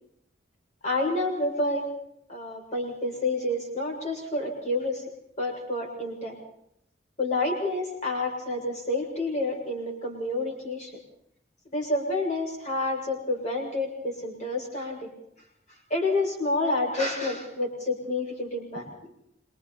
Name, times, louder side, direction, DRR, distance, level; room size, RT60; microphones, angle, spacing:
voice 1, 0.8-1.9 2.3-5.0 5.4-6.3 7.2-10.9 11.7-15.1 15.9-19.1, left 2 dB, 40° left, 1 dB, 7.0 m, -29 dB
26.5 x 25.0 x 4.3 m, 0.75 s
head